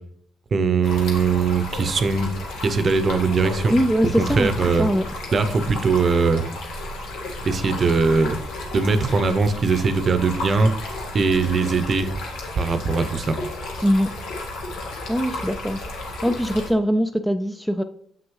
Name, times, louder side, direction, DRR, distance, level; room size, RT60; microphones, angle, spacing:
voice 1, 0.5-2.3 2.6-3.8 4.2-4.9 5.3-6.4 7.4-8.4 8.7-10.7 11.1-12.1 12.6-13.4, right 4 dB, 40° right, 10 dB, 0.7 m, -20 dB
Stream, 0.8-16.7, left 2 dB, 80° left, 1.5 m, -33 dB
voice 2, 3.7-4.5 4.8-5.1 13.8-14.1 15.1-15.8 16.2-17.8, equal, 5° left, 8 dB, 0.3 m, -21 dB
7.2 x 6.1 x 3.1 m, 0.65 s
cardioid pair, 110°, 0 cm